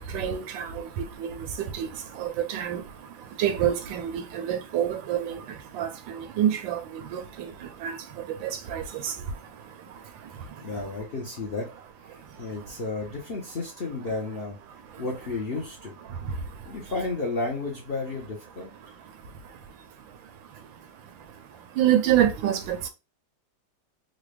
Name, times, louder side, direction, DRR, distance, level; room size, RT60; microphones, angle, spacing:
voice 1, 0.0-10.7 12.1-12.6 14.9-15.0 16.1-16.7 18.8-22.9, right 10 dB, 90° right, 1.4 m, -29 dB
voice 2, 10.3-11.7 12.0-14.6 15.0-15.9 16.6-18.9, left 3 dB, 55° left, 0.6 m, -33 dB
3.9 x 2.2 x 3.2 m
omnidirectional pair, 2.0 m